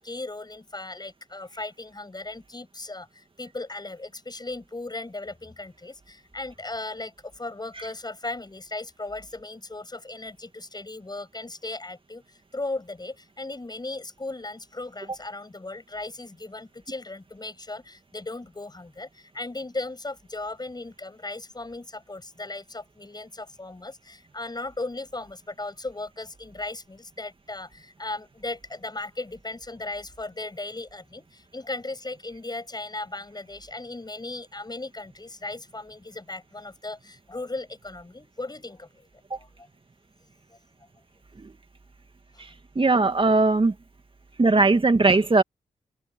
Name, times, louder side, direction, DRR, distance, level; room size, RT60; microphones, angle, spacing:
voice 1, 0.0-3.1 3.4-12.2 12.5-19.1 19.3-38.9 39.4-39.5, left 2 dB, 30° left, 6.9 m, -37 dB
voice 2, 42.4-43.7 44.4-45.4, right 3 dB, 40° right, 2.1 m, -20 dB
open air
supercardioid pair, 40°, 14 cm